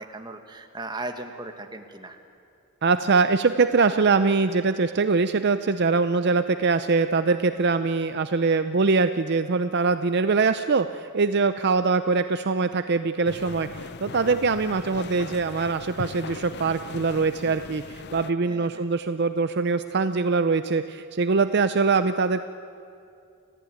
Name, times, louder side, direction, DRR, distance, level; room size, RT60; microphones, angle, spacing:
voice 1, 0.0-2.2 18.5-18.9, right 2 dB, 20° right, 5 dB, 1.5 m, -37 dB
voice 2, 2.8-22.4, right 4 dB, 50° right, 10 dB, 0.6 m, -23 dB
sound 1, 13.2-18.3, left 4 dB, 50° left, 0.6 m, -39 dB
29.5 x 14.5 x 9.3 m, 2.5 s
head